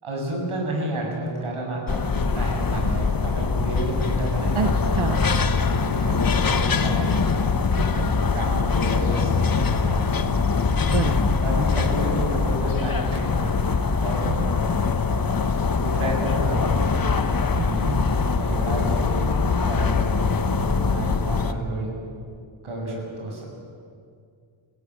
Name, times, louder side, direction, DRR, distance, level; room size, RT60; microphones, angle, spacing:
voice 1, 0.0-5.0 5.9-7.3 7.9-10.0 11.4-13.6 14.0-14.3 15.8-16.8 17.5-18.1 18.4-20.2 20.5-22.0 22.6-23.5, right 1 dB, 90° right, 0 dB, 7.6 m, -31 dB
sound 1, 1.9-21.5, left 4 dB, 45° left, 1.2 m, -23 dB
voice 2, 4.5-5.3 8.0-8.1 10.9-11.3 14.3-14.5 17.6-18.1, right 7 dB, 70° right, 8 dB, 0.9 m, -29 dB
28.5 x 16.5 x 9.8 m, 2.3 s
wide cardioid pair, 170°, 49 cm